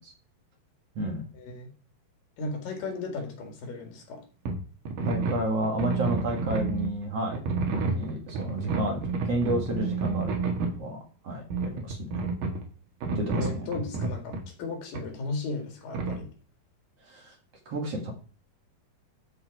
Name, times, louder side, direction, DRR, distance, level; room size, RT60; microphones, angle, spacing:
voice 1, 1.3-1.7 2.4-4.2 13.3-16.3, left 3 dB, 75° left, 3.6 m, -35 dB
sound 1, 4.5-4.6 4.9-6.9 7.3-10.8 11.5-12.6 13.0-14.4 14.9-15.0 15.9-16.2, right 4 dB, 70° right, 3.2 m, -30 dB
voice 2, 5.0-7.4 7.7-10.3 10.7-11.0 11.2-12.1 13.1-13.7 17.0-17.4 17.7-18.1, right 1 dB, 50° right, 2.6 m, -31 dB
12.5 x 5.0 x 4.6 m
omnidirectional pair, 3.9 m